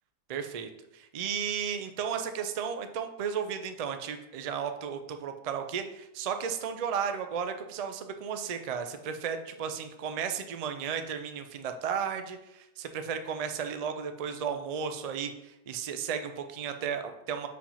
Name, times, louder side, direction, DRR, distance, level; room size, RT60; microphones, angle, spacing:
voice 1, 0.3-17.5, right 7 dB, 70° right, 7 dB, 0.3 m, -34 dB
4.8 x 3.5 x 5.6 m, 0.88 s
omnidirectional pair, 1.3 m